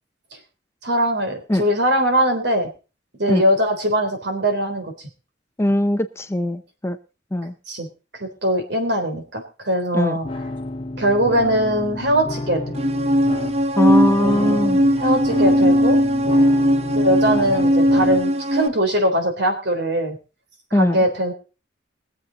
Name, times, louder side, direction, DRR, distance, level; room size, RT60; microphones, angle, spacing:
voice 1, 0.8-2.7 3.2-5.1 7.7-10.3 11.0-12.7 14.2-14.6 14.9-16.0 16.9-20.2 20.7-21.3, equal, 65° right, 5 dB, 3.6 m, -21 dB
voice 2, 5.6-7.0 7.3-7.5 9.9-10.2 13.8-14.8 20.7-21.0, left 1 dB, 15° left, 9 dB, 0.7 m, -20 dB
sound 1, 10.2-18.2, left 1 dB, 30° left, 1.1 m, -31 dB
sound 2, 12.8-18.7, equal, 35° right, 0.8 m, -18 dB
22.0 x 7.8 x 4.1 m, 0.32 s
head